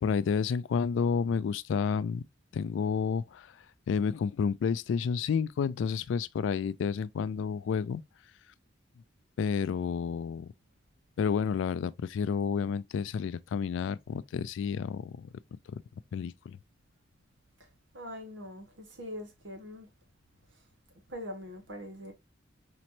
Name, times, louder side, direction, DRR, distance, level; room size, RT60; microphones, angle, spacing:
voice 1, 0.0-2.2 2.5-3.5 3.9-8.0 9.4-10.5 11.2-15.1 15.7-15.8 16.1-16.6, left 6 dB, 75° left, 0.3 m, -30 dB
voice 2, 17.9-19.9 21.1-22.1, left 1 dB, 70° right, 1.2 m, -42 dB
4.3 x 3.0 x 2.6 m
head